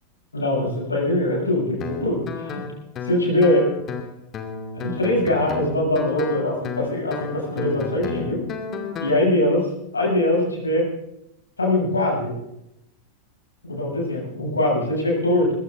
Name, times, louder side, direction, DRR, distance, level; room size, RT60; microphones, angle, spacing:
voice 1, 0.3-2.7 3.0-3.7 4.7-8.5 9.0-9.7 9.9-10.9 11.6-12.4 13.6-15.5, left 1 dB, 75° left, -1 dB, 7.2 m, -22 dB
Guitar, 1.8-9.2, left 5 dB, 30° left, 2.3 m, -33 dB
21.0 x 16.0 x 3.8 m, 0.83 s
figure-of-eight pair, 90°, 0 cm